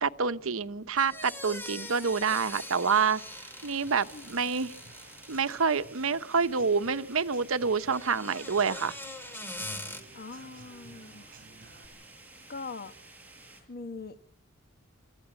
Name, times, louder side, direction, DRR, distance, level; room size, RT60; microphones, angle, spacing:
voice 1, 0.0-4.8 5.3-8.9, right 5 dB, 70° right, 0.9 m, -28 dB
sound 1, 1.0-5.8 7.8-10.0, left 1 dB, 10° left, 2.6 m, -43 dB
sound 2, 1.8-13.6, right 2 dB, 10° right, 6.7 m, -53 dB
Human voice / Acoustic guitar / Drum, 3.9-11.9, right 3 dB, 40° right, 4.8 m, -56 dB
voice 2, 10.1-11.3 12.5-12.9 13.7-14.3, left 4 dB, 45° left, 1.2 m, -42 dB
26.5 x 15.0 x 8.4 m
head